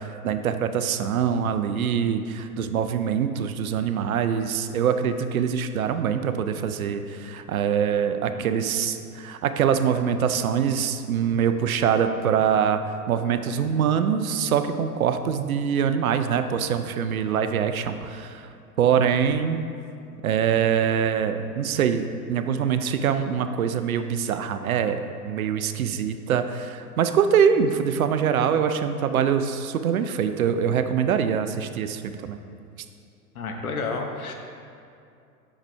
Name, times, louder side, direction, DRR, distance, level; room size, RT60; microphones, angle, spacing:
voice 1, 0.0-12.8 13.1-18.5 18.8-19.6 20.2-32.4, right 7 dB, 65° right, 9 dB, 0.6 m, -24 dB
voice 2, 8.3-8.6 33.3-34.3, left 4 dB, 70° left, 3 dB, 1.0 m, -31 dB
8.0 x 5.9 x 3.3 m, 2.4 s
figure-of-eight pair, 95°, 45 cm